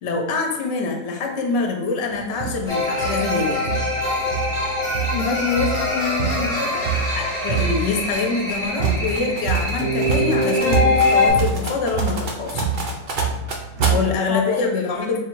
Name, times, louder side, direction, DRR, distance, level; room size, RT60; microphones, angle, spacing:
voice 1, 0.0-3.6 7.2-12.6 13.9-15.2, left 4 dB, 60° left, 1 dB, 0.8 m, -25 dB
sound 1, 2.1-14.0, right 5 dB, 80° right, 0.4 m, -26 dB
sound 2, 2.7-11.3, left 2 dB, 5° left, 0.8 m, -23 dB
voice 2, 5.1-6.9 13.8-14.7, left 6 dB, 85° left, 5 dB, 1.1 m, -26 dB
3.6 x 2.4 x 4.5 m, 0.94 s
omnidirectional pair, 1.6 m